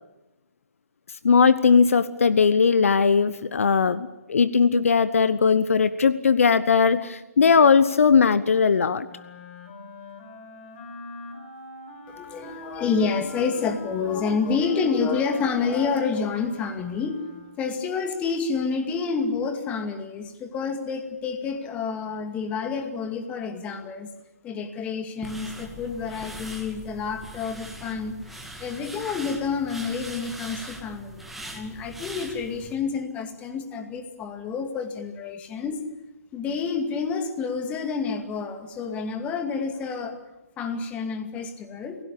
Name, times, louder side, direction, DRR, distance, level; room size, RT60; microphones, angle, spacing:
voice 1, 1.2-9.1, left 5 dB, 65° left, 14 dB, 1.1 m, -19 dB
Wind instrument woodwind instrument, 9.0-17.7, left 2 dB, 40° left, 5.2 m, -43 dB
voice 2, 12.1-17.2 17.6-24.1 24.4-35.8 36.3-40.2 40.6-42.0, left 5 dB, 15° left, 7 dB, 2.3 m, -29 dB
sound 1, 25.2-32.7, right 1 dB, ahead, 2.5 m, -41 dB
26.0 x 17.5 x 8.6 m, 1.0 s
figure-of-eight pair, 145°, 8 cm